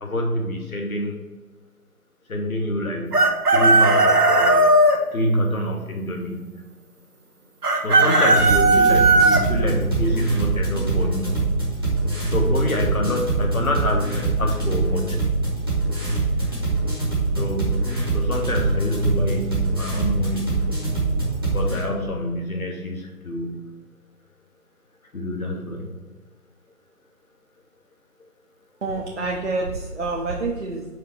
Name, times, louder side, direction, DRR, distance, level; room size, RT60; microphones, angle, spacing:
voice 1, 0.0-1.2 2.3-3.2 3.5-4.7 5.1-6.5 7.8-11.4 12.3-15.2 17.3-17.9 18.1-20.7 21.5-23.6 25.1-26.0 28.2-28.3 28.9-29.0, equal, 60° left, 1 dB, 1.2 m, -26 dB
Chicken rooster, 3.1-5.0 7.6-9.4, right 2 dB, 75° right, 1.1 m, -16 dB
sound 1, 8.3-21.8, right 3 dB, 15° right, 1.0 m, -24 dB
voice 2, 28.8-30.8, right 3 dB, 50° right, -1 dB, 0.8 m, -27 dB
5.0 x 4.0 x 5.6 m, 1.2 s
figure-of-eight pair, 165°, 47 cm